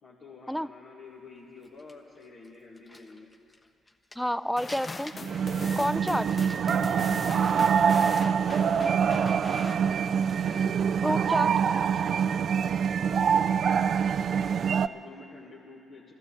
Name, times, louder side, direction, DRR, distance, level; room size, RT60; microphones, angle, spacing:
voice 1, 0.0-3.3 6.1-6.5 7.2-8.6 8.8-9.8 12.9-13.8 14.7-16.1, left 3 dB, 65° left, -5 dB, 1.8 m, -49 dB
Crumpling crinkling, 1.4-4.3 4.7-8.8 9.1-9.2 9.8-10.7 11.3-11.5, left 1 dB, 25° left, 1.1 m, -50 dB
voice 2, 4.2-5.1 5.8-6.3 11.0-11.5, equal, ahead, 15 dB, 0.5 m, -29 dB
sound 1, 4.6-11.1, left 3 dB, 40° left, 0.8 m, -41 dB
sound 2, 5.1-14.9, right 7 dB, 60° right, 0.3 m, -25 dB
13.5 x 12.0 x 8.4 m, 2.5 s
hypercardioid pair, 50°, 0 cm